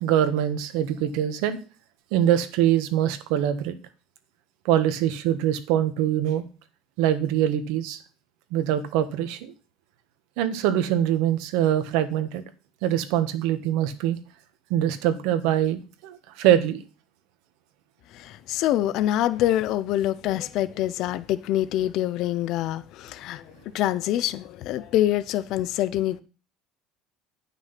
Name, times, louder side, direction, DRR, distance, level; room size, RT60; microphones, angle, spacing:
voice 1, 0.0-1.6 2.1-3.8 4.6-6.4 7.0-8.0 8.5-9.5 10.4-12.4 12.8-14.2 14.7-16.8, right 11 dB, 75° right, 1.3 m, -23 dB
voice 2, 18.1-26.2, left 13 dB, 60° left, 0.6 m, -25 dB
9.7 x 6.0 x 5.7 m
cardioid pair, 135°, 0 cm